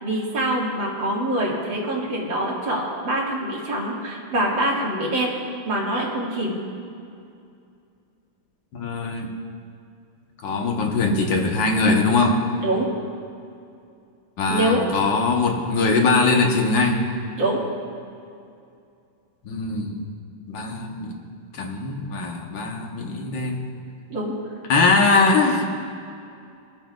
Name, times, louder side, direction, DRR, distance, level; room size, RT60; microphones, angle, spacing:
voice 1, 0.0-5.3 5.6-6.6 12.6-12.9 14.5-14.8 17.4-17.6 24.1-24.3, right 1 dB, 70° right, -5 dB, 2.8 m, -24 dB
voice 2, 8.7-9.3 10.4-12.5 14.4-17.0 19.4-20.0 20.5-21.2 21.5-23.7 24.7-25.6, left 3 dB, 70° left, 1 dB, 1.8 m, -21 dB
26.5 x 9.0 x 2.4 m, 2.5 s
omnidirectional pair, 2.2 m